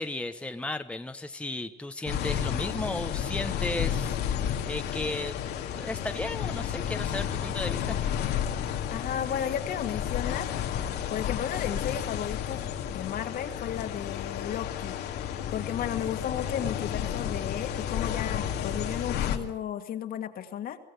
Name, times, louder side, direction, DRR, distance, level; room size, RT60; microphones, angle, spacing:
voice 1, 0.0-4.2 4.5-5.3 5.7-8.0, left 2 dB, 5° left, 7 dB, 1.1 m, -34 dB
sound 1, 2.1-19.4, left 9 dB, 80° left, 2.1 m, -32 dB
voice 2, 8.9-10.5 11.1-15.0 15.5-20.8, left 9 dB, 60° left, 7 dB, 2.1 m, -34 dB
23.5 x 16.0 x 8.1 m, 0.83 s
cardioid pair, 110°, 17 cm